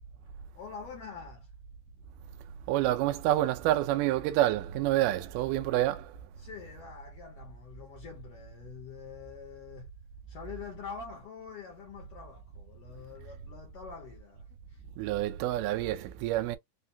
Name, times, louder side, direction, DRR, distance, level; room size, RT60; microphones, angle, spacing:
voice 1, 0.5-1.5 6.4-9.9 10.3-14.9, left 6 dB, 70° left, 1.5 m, -45 dB
voice 2, 2.7-6.2 15.0-16.6, right 14 dB, 85° right, 2.1 m, -28 dB
5.5 x 2.3 x 2.6 m
omnidirectional pair, 3.7 m